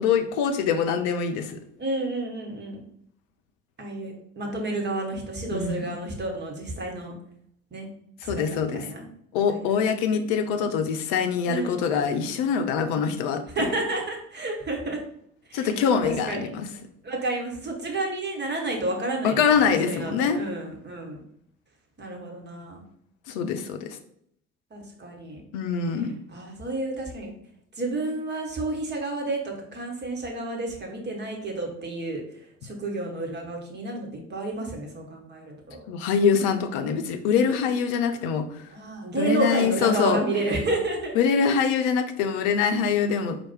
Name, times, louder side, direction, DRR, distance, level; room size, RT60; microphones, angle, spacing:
voice 1, 0.0-1.6 5.5-5.8 8.2-8.8 9.3-13.7 15.5-16.7 19.2-20.4 23.3-24.0 25.5-26.1 35.9-38.6 39.2-40.2 41.1-43.4, left 6 dB, 55° left, 7 dB, 0.7 m, -24 dB
voice 2, 1.8-2.8 3.8-7.2 7.7-7.9 8.2-9.0 9.5-9.6 11.5-11.8 13.5-15.0 15.5-15.7 16.0-16.5 17.0-21.2 22.0-22.8 24.7-25.4 26.3-27.3 27.8-32.2 32.6-35.8 38.7-41.1, right 2 dB, 30° right, 1 dB, 1.4 m, -30 dB
4.5 x 2.5 x 4.5 m, 0.70 s
figure-of-eight pair, 55°, 36 cm